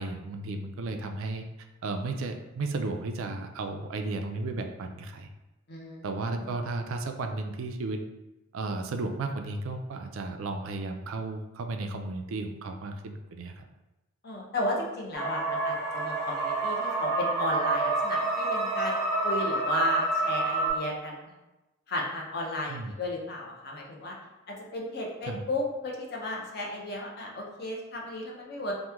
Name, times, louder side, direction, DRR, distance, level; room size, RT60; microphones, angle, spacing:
voice 1, 0.0-1.4 1.8-5.3 6.0-8.0 8.5-13.6 22.7-22.9 25.3-25.4, right 3 dB, 70° right, 5 dB, 0.3 m, -34 dB
voice 2, 5.7-6.1 6.4-6.5 14.2-21.3 21.9-24.2 24.5-28.7, left 1 dB, 45° left, -1 dB, 0.6 m, -34 dB
sound 1, 15.1-20.7, right 2 dB, 70° left, 1.2 m, -28 dB
3.0 x 2.1 x 3.4 m, 1.0 s
head